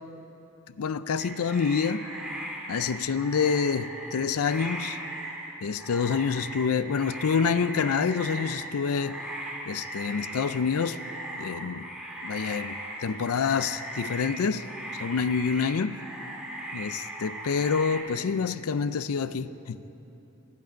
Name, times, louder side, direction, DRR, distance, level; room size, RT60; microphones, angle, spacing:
voice 1, 0.8-2.0 2.7-5.0 5.6-9.2 9.7-11.0 11.4-11.9 12.2-14.6 15.0-16.0 16.7-19.8, left 6 dB, 80° left, 0.5 m, -27 dB
sound 1, 1.2-18.0, right 1 dB, 5° right, 2.1 m, -38 dB
12.5 x 12.5 x 9.2 m
head